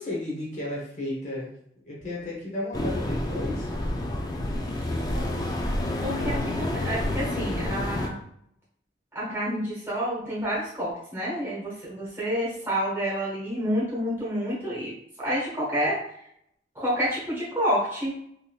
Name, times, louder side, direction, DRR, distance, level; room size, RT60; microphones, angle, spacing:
voice 1, 0.0-1.5 1.8-3.7 4.9-5.5 6.5-6.6, left 1 dB, 40° left, -5 dB, 0.8 m, -34 dB
sound 1, 2.7-8.1, left 1 dB, 20° left, 0.4 m, -29 dB
voice 2, 6.0-8.1 9.1-16.0 16.7-18.1, equal, 15° right, -8 dB, 1.3 m, -29 dB
3.5 x 2.7 x 2.3 m, 0.71 s
head